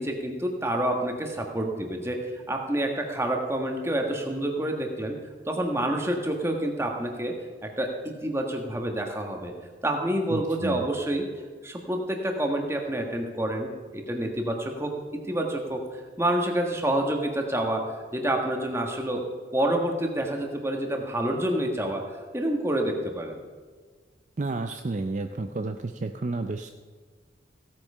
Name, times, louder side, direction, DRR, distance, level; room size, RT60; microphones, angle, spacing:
voice 1, 0.0-2.2 2.5-5.2 5.5-7.3 7.6-9.5 9.8-11.3 11.6-15.8 16.2-17.8 18.1-19.2 19.5-22.0 22.3-23.4, right 1 dB, 15° right, 2 dB, 1.4 m, -28 dB
voice 2, 10.3-10.8 24.4-26.7, right 3 dB, 40° right, 7 dB, 0.5 m, -31 dB
16.0 x 8.5 x 5.5 m, 1.5 s
head